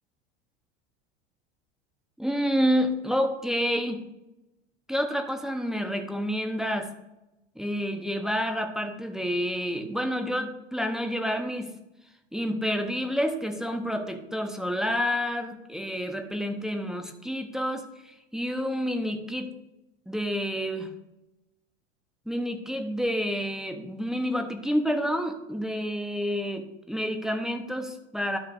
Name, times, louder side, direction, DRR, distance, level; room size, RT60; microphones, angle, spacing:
voice 1, 2.2-4.0 4.9-6.9 7.6-11.7 12.3-19.5 20.1-20.9 22.3-28.4, equal, ahead, 5 dB, 0.8 m, -29 dB
12.5 x 5.8 x 2.6 m, 0.92 s
hypercardioid pair, 105°, 36 cm